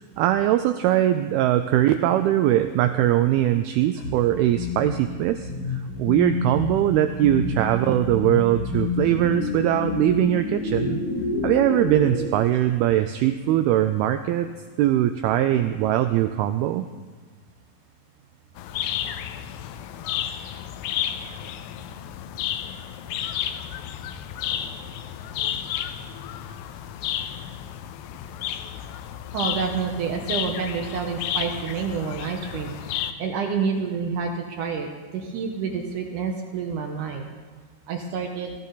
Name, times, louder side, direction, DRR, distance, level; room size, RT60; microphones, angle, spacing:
voice 1, 0.2-11.0 11.4-14.5 14.8-16.9, right 13 dB, 85° right, 9 dB, 2.2 m, -21 dB
sound 1, 4.0-12.2, left 4 dB, 50° left, 3.0 m, -29 dB
sound 2, 18.6-33.1, left 10 dB, 85° left, 2.8 m, -32 dB
voice 2, 29.3-34.9 35.1-37.3 37.9-38.5, right 5 dB, 70° right, 3 dB, 2.0 m, -28 dB
17.5 x 15.0 x 4.0 m, 1.4 s
omnidirectional pair, 5.0 m